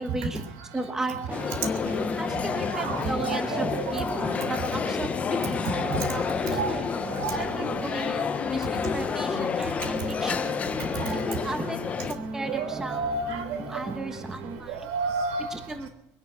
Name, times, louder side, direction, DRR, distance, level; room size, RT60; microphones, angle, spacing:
voice 1, 0.0-1.5 2.2-6.8 7.3-10.4 11.1-13.1 13.6-14.9 15.5-15.9, right 2 dB, 10° right, 6 dB, 1.2 m, -36 dB
sound 1, 1.3-12.1, left 6 dB, 25° left, 0.8 m, -30 dB
sound 2, 1.3-14.6, right 2 dB, 30° right, 1.8 m, -39 dB
voice 2, 2.6-4.0 4.4-4.5 5.6-6.1 6.5-6.8 7.1-7.5 8.8-8.9 10.0-10.1 11.1-11.2 12.5-13.8 14.7-15.5, right 4 dB, 75° right, 8 dB, 3.6 m, -31 dB
22.0 x 10.5 x 6.2 m, 0.82 s
cardioid pair, 150°, 5 cm